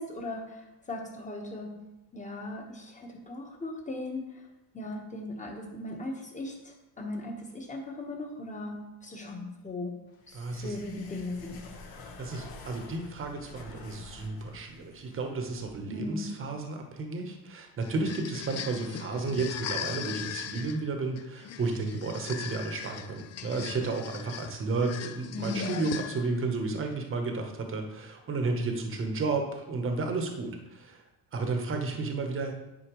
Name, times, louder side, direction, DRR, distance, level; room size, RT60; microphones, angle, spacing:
voice 1, 0.0-1.8 2.1-4.5 4.7-9.9 10.3-11.6 15.9-16.4 25.3-25.8, left 2 dB, 15° left, 1 dB, 1.3 m, -38 dB
sound 1, 10.1-15.8, left 3 dB, 60° left, 1.4 m, -48 dB
voice 2, 10.3-10.8 12.2-31.0 31.3-32.5, right 3 dB, 30° right, 4 dB, 1.0 m, -32 dB
sound 2, 17.8-26.4, left 9 dB, 40° left, 0.4 m, -39 dB
10.0 x 4.3 x 3.1 m, 0.98 s
cardioid pair, 120°, 42 cm